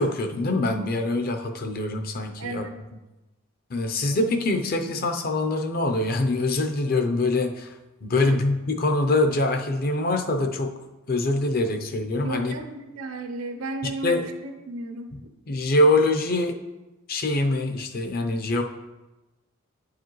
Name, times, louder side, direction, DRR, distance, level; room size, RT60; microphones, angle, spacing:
voice 1, 0.0-2.7 3.7-7.7 8.0-10.7 11.1-12.5 14.0-14.3 15.5-16.6 17.1-18.6, left 2 dB, 45° left, 5 dB, 0.6 m, -24 dB
voice 2, 2.4-2.7 8.1-8.4 12.2-15.1, right 3 dB, 75° right, 5 dB, 0.7 m, -34 dB
9.3 x 4.8 x 3.1 m, 1.1 s
head